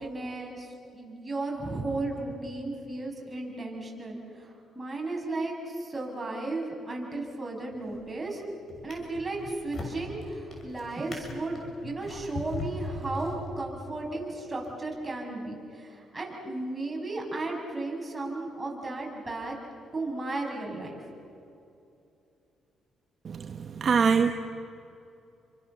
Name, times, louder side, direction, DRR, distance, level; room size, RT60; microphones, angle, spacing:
voice 1, 0.0-8.4 8.8-19.6 19.9-21.0, right 2 dB, 15° right, -1 dB, 7.4 m, -34 dB
Drawer open or close, 7.7-8.1 8.7-13.9 14.6-14.7, left 2 dB, 45° left, 6.8 m, -40 dB
voice 2, 23.2-24.3, right 6 dB, 50° right, 7 dB, 1.1 m, -24 dB
29.5 x 24.5 x 7.1 m, 2.7 s
cardioid pair, 90°, 0 cm